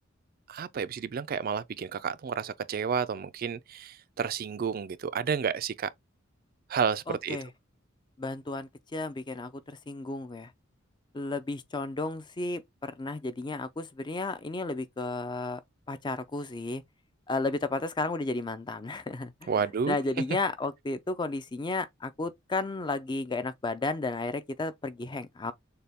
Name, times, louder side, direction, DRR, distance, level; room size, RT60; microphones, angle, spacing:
voice 1, 0.5-5.9 6.7-7.4 19.5-20.0, right 6 dB, 45° right, 0.4 m, -31 dB
voice 2, 7.1-7.5 8.2-10.5 11.1-15.6 15.9-16.8 17.3-25.5, left 3 dB, 20° left, 0.4 m, -33 dB
6.7 x 2.3 x 3.5 m
head